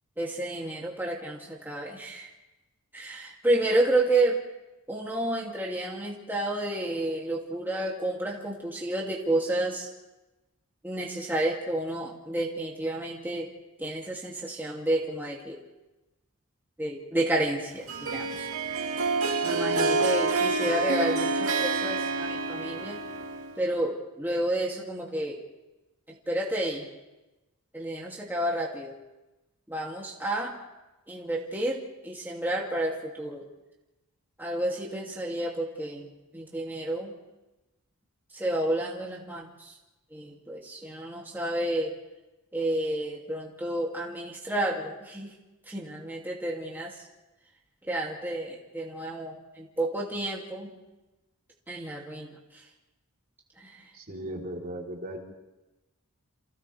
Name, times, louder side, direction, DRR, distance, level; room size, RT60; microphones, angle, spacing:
voice 1, 0.2-2.3 2.9-4.4 4.9-9.9 10.8-13.5 13.8-15.6 16.8-18.5 19.4-23.0 23.6-25.4 26.3-26.9 27.7-28.9 29.7-30.5 31.1-33.5 34.4-37.1 38.3-39.7 40.1-41.9 42.5-45.3 45.7-47.0 47.9-50.7 51.7-52.6 53.6-53.8, right 1 dB, 10° right, -4 dB, 2.5 m, -30 dB
Harp, 17.9-23.7, right 3 dB, 70° right, 1.9 m, -28 dB
voice 2, 53.9-55.2, right 1 dB, 45° right, -1 dB, 3.6 m, -37 dB
29.5 x 28.0 x 3.4 m, 1.0 s
head